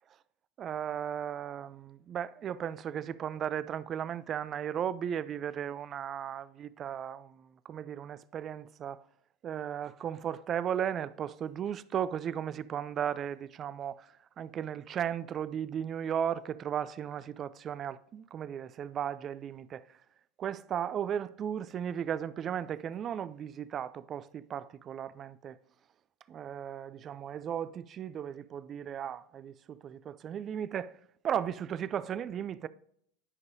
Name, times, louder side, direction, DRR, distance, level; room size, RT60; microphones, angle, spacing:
voice 1, 0.6-9.0 9.4-19.8 20.4-25.6 26.3-30.9 31.2-32.7, right 9 dB, 35° right, 0.3 m, -36 dB
11.0 x 5.3 x 2.7 m
hypercardioid pair, 85°, 0 cm